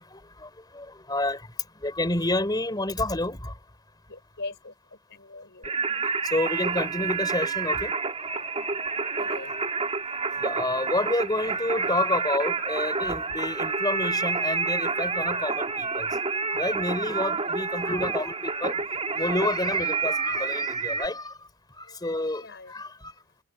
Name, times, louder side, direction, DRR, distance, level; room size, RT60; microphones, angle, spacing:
voice 1, 0.0-1.5 1.8-3.5 6.3-8.3 10.4-16.1 16.5-18.8 19.1-21.4 21.8-23.1, left 2 dB, 20° left, 4.0 m, -29 dB
voice 2, 4.1-4.7 5.1-5.7 9.1-9.6 17.3-17.7 21.9-22.0 22.3-22.8, left 3 dB, 55° left, 6.4 m, -41 dB
Singing, 5.6-21.1, right 4 dB, 30° right, 3.4 m, -29 dB
head